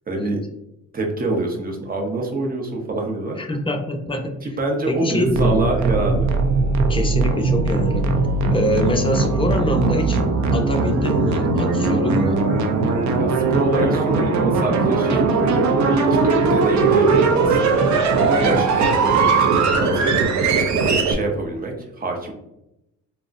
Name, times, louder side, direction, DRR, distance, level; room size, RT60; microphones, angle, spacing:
voice 1, 0.1-0.4 0.9-3.4 4.4-6.3 13.2-15.6 15.9-17.8 18.2-20.1 20.8-22.3, right 2 dB, 30° right, 1 dB, 0.7 m, -26 dB
voice 2, 3.4-4.4 4.8-5.6 6.9-8.1 8.5-10.2 10.5-12.5 18.3-18.6, left 1 dB, 20° left, 4 dB, 0.4 m, -24 dB
sound 1, 5.3-21.1, right 4 dB, 70° right, 0.5 m, -19 dB
3.7 x 2.0 x 2.5 m, 0.87 s
cardioid pair, 90°, 30 cm